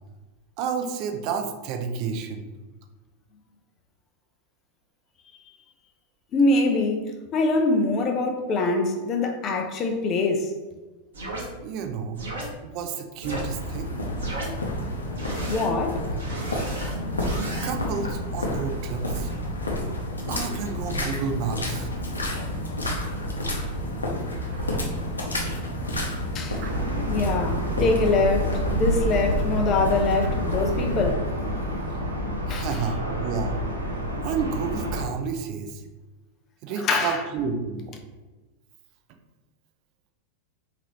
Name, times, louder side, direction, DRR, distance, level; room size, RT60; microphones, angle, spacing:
voice 1, 0.6-2.4 11.6-12.2 12.6-13.9 17.6-19.3 20.3-21.9 24.5-24.8 26.5-26.9 32.5-33.6 34.2-35.8 36.6-37.9, right 6 dB, 40° right, 0.4 m, -30 dB
voice 2, 6.3-10.5 15.5-16.0 26.3-26.6 27.1-31.3 32.5-32.8 36.8-37.2, left 3 dB, 30° left, 0.5 m, -24 dB
sound 1, 11.1-11.5 12.1-12.5 13.2-13.4 14.2-14.5 15.1-15.7 16.2-17.7, right 2 dB, 65° right, 1.0 m, -34 dB
sound 2, 13.2-31.1, equal, 80° left, 0.7 m, -29 dB
sound 3, 26.6-35.0, equal, 85° right, 0.7 m, -29 dB
4.6 x 2.9 x 2.9 m
figure-of-eight pair, 90°, 0 cm